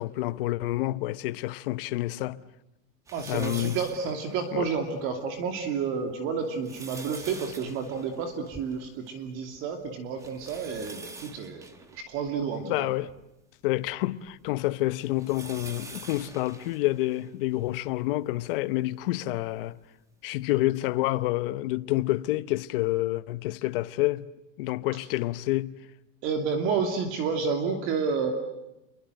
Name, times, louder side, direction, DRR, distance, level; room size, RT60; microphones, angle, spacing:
voice 1, 0.0-2.4 3.3-3.8 4.5-4.7 12.7-13.1 13.6-19.8 20.2-24.3 24.6-25.8, left 17 dB, 50° left, 1.0 m, -28 dB
sound 1, 3.1-4.9 5.4-5.5 6.3-9.3 9.5-9.6 10.2-13.2 13.8-17.7 18.4-18.5 19.8-19.9, right 3 dB, 10° right, 1.5 m, -46 dB
voice 2, 3.1-11.7 11.9-12.9 26.2-28.3, right 5 dB, 35° right, 2.8 m, -30 dB
29.0 x 23.5 x 7.9 m
supercardioid pair, 175°, 36 cm